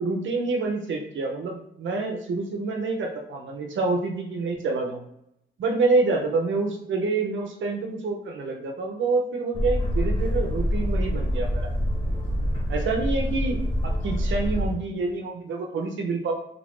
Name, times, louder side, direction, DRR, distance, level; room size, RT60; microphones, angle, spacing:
voice 1, 0.0-5.0 5.6-11.7 12.7-16.3, right 3 dB, 75° right, 2 dB, 0.6 m, -27 dB
Boat Water vehicle, 9.5-14.7, equal, 30° left, 1.1 m, -26 dB
3.3 x 2.5 x 3.5 m, 0.79 s
wide cardioid pair, 120°, 20 cm